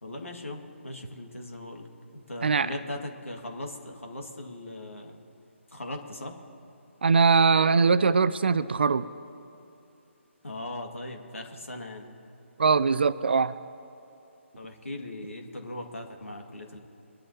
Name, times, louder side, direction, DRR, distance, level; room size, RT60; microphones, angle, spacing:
voice 1, 0.0-1.9 2.1-5.2 5.7-6.4 10.4-12.1 14.6-16.8, left 1 dB, 75° left, 3 dB, 2.1 m, -39 dB
voice 2, 7.0-9.0 12.6-13.5, right 5 dB, 50° right, 16 dB, 0.5 m, -21 dB
23.0 x 11.5 x 2.9 m, 2.8 s
figure-of-eight pair, 145°, 7 cm